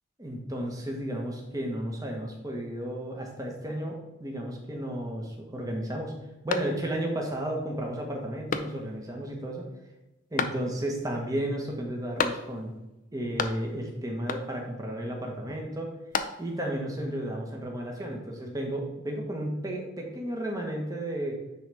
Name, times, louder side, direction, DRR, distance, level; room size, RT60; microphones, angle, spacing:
voice 1, 0.2-9.7 10.3-12.7 13.1-15.9 16.4-21.4, right 1 dB, 20° right, 0 dB, 1.2 m, -33 dB
sound 1, 6.5-7.2 7.6-7.7 8.5-9.1 10.4-11.0 12.2-12.8 13.0-13.9 14.3-14.8 15.8-16.7, left 5 dB, 45° left, 0.5 m, -33 dB
9.6 x 4.0 x 3.5 m, 0.99 s
head